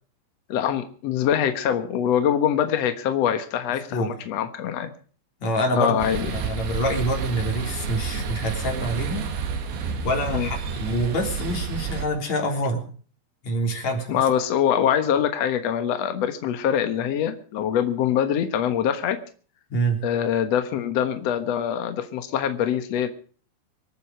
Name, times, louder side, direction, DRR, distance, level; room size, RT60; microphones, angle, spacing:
voice 1, 0.5-4.9 5.7-6.4 8.1-8.2 10.3-10.5 14.1-19.2 20.0-23.1, left 9 dB, 80° left, 8 dB, 1.4 m, -24 dB
voice 2, 5.4-6.0 6.3-9.3 10.0-12.8 13.4-14.2 19.7-20.0, right 1 dB, 40° left, 2 dB, 4.5 m, -26 dB
sound 1, 6.0-12.1, right 6 dB, 90° right, 4.3 m, -30 dB
25.5 x 9.2 x 4.9 m, 0.42 s
omnidirectional pair, 5.0 m